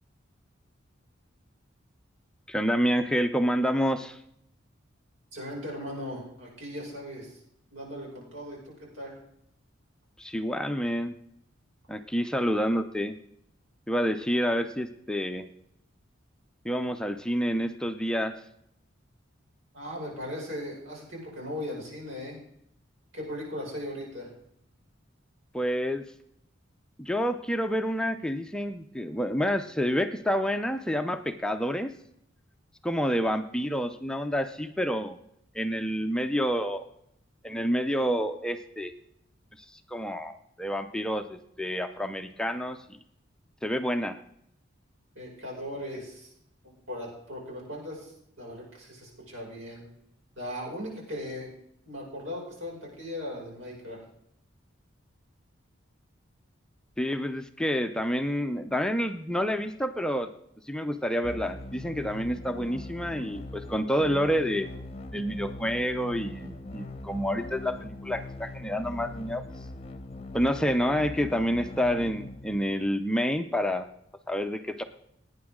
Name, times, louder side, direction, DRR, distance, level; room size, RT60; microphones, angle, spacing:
voice 1, 2.5-4.2 10.2-11.1 11.9-13.2 13.9-15.5 16.6-18.4 25.5-26.0 27.0-31.9 32.8-35.2 35.5-36.9 37.4-38.9 39.7-42.8 43.6-44.2 57.0-60.3 60.7-64.7 65.1-69.4 70.3-73.9 74.3-74.8, equal, 5° left, 7 dB, 0.5 m, -28 dB
voice 2, 5.3-7.4 7.7-9.2 19.7-22.4 23.1-24.3 45.1-46.3 46.6-48.1 48.4-49.9 50.4-51.5 51.8-54.0, left 1 dB, 80° right, -3 dB, 5.9 m, -38 dB
sound 1, 61.2-73.2, left 2 dB, 30° left, 0.8 m, -41 dB
17.5 x 9.6 x 3.7 m, 0.74 s
head